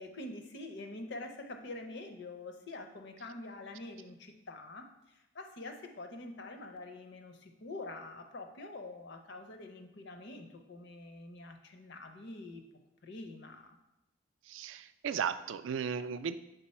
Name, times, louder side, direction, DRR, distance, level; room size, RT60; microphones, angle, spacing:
voice 1, 0.0-12.6 13.0-13.8, left 2 dB, 60° left, 6 dB, 0.7 m, -46 dB
voice 2, 14.5-16.4, right 7 dB, 70° right, 13 dB, 0.3 m, -35 dB
6.8 x 3.9 x 4.3 m, 0.92 s
head